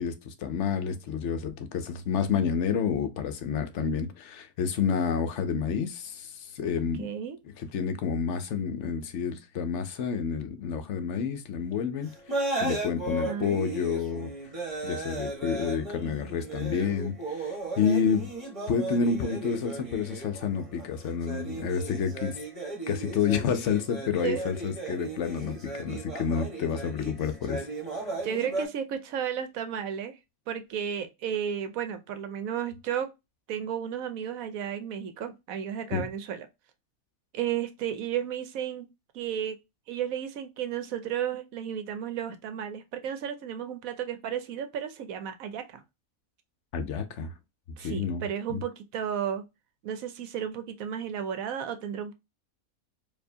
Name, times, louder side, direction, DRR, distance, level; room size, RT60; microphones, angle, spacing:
voice 1, 0.0-7.1 7.6-14.3 14.8-18.3 18.7-22.4 22.9-27.7 35.9-36.0 46.7-47.3 47.8-48.2 48.5-48.6, left 6 dB, 60° left, 0.9 m, -29 dB
voice 2, 7.0-7.4 13.1-13.6 24.2-24.5 28.2-30.2 30.5-33.1 33.5-36.5 37.3-38.9 39.1-39.6 39.9-45.8 47.8-49.4 49.8-52.1, right 9 dB, 70° right, 1.0 m, -33 dB
sound 1, 12.1-28.7, right 2 dB, 25° right, 1.3 m, -36 dB
4.5 x 2.7 x 2.6 m
omnidirectional pair, 1.6 m